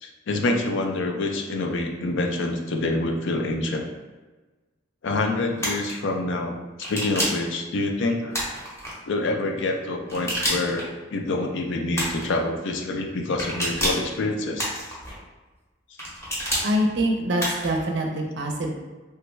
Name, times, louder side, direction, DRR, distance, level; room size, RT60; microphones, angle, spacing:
voice 1, 0.0-3.8 5.0-8.4 9.1-10.9 11.1-14.7, left 2 dB, 60° left, 3 dB, 0.4 m, -26 dB
sound 1, 5.6-5.9 6.8-7.5 8.3-8.9 10.1-10.8 11.9-12.3 13.4-14.1 14.6-15.1 16.0-16.7 17.4-17.8, equal, 15° left, 0.7 m, -28 dB
voice 2, 16.6-18.7, equal, 55° right, 1 dB, 0.5 m, -24 dB
3.3 x 2.2 x 3.0 m, 1.2 s
head